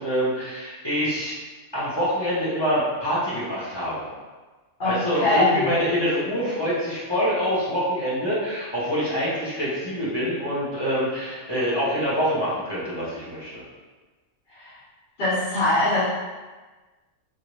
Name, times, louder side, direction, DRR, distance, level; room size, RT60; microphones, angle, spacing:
voice 1, 0.0-1.4 1.7-4.1 4.8-13.6, equal, 25° left, -9 dB, 0.7 m, -25 dB
voice 2, 4.8-5.7 14.5-14.8 15.2-16.0, left 2 dB, 45° left, -11 dB, 1.2 m, -22 dB
3.4 x 2.5 x 3.0 m, 1.3 s
omnidirectional pair, 1.4 m